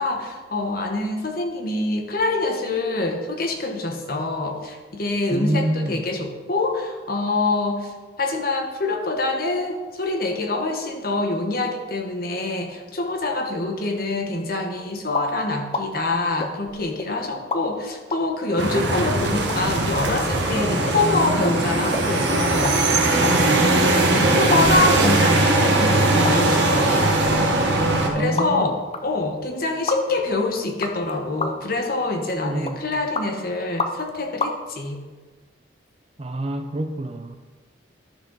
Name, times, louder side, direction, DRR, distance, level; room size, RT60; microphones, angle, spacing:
voice 1, 0.0-22.8 24.1-27.1 28.1-35.0, left 2 dB, 50° left, 3 dB, 1.1 m, -25 dB
voice 2, 5.3-6.0 23.2-23.8 28.0-28.7 32.4-32.8 36.2-37.3, right 1 dB, 30° right, 7 dB, 0.5 m, -27 dB
sound 1, 15.1-15.3 15.7-15.9 16.4-17.1 17.5-17.6 18.1-18.2 18.9-19.0 19.5-19.6 20.1-20.2 20.5-20.6 20.9-21.0 21.4-21.6 21.9-22.1 22.5-22.8 23.0-24.0 24.5-25.2 25.6-25.7 26.2-26.4 26.8-28.7 28.9-29.0 29.9-30.0 30.8-31.1 31.4-31.7 32.1-32.3 32.7-33.3 33.8-34.1 34.4-34.5, left 3 dB, 30° left, 0.6 m, -29 dB
sound 2, 18.6-28.1, right 2 dB, 60° right, 1.2 m, -20 dB
11.5 x 6.3 x 4.0 m, 1.3 s
head